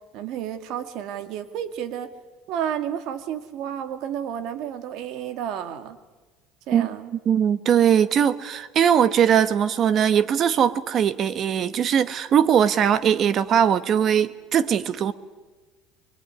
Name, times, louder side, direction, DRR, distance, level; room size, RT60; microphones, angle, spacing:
voice 1, 0.1-2.1 2.5-6.0 6.7-7.1, right 9 dB, 55° right, 8 dB, 2.2 m, -31 dB
voice 2, 7.3-15.1, right 8 dB, 35° right, 13 dB, 1.2 m, -20 dB
24.0 x 22.0 x 9.7 m, 1.3 s
cardioid pair, 155°, 0 cm